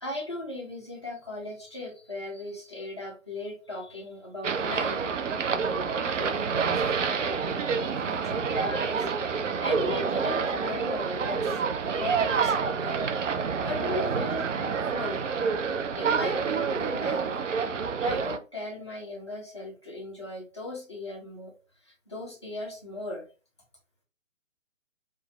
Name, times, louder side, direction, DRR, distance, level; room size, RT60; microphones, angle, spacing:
voice 1, 0.0-5.7 6.1-9.1 9.6-15.3 16.0-17.2 18.0-21.5 21.8-23.3, left 2 dB, 25° left, -2 dB, 0.4 m, -38 dB
sound 1, 4.4-18.4, right 5 dB, 70° right, 0.5 m, -28 dB
2.9 x 2.4 x 2.3 m, 0.35 s
figure-of-eight pair, 135°, 39 cm